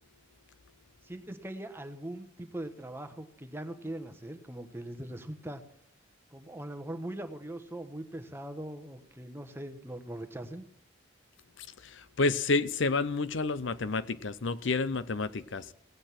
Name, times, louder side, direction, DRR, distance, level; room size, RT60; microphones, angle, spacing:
voice 1, 1.0-5.6 6.3-10.7, right 1 dB, 10° right, 1.2 m, -41 dB
voice 2, 11.6-15.7, left 3 dB, 70° left, 0.7 m, -30 dB
17.0 x 9.0 x 5.9 m
head